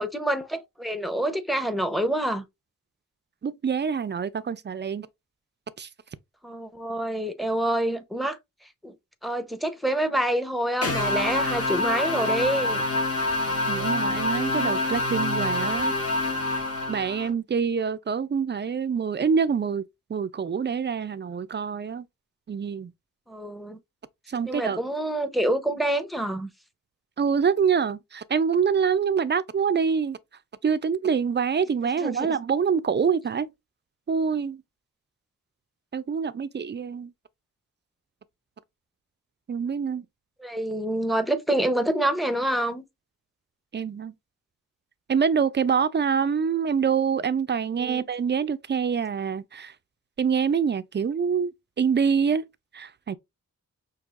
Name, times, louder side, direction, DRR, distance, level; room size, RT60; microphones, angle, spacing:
voice 1, 0.0-2.4 6.4-8.4 8.8-8.9 9.2-12.8 23.3-23.8 24.4-26.5 32.0-32.3 40.4-42.8 47.8-48.0, right 1 dB, ahead, 0.7 m, -27 dB
voice 2, 3.4-5.1 5.8-5.9 13.7-15.9 16.9-19.8 20.1-22.0 22.5-22.9 24.3-24.8 27.2-30.2 30.6-33.5 34.1-34.6 35.9-37.1 39.5-40.1 43.7-44.1 45.1-49.7 50.2-52.4 52.7-53.2, right 6 dB, 35° right, 0.4 m, -25 dB
sound 1, 10.8-17.3, left 2 dB, 45° left, 1.7 m, -26 dB
6.1 x 2.9 x 2.4 m
wide cardioid pair, 100°, 32 cm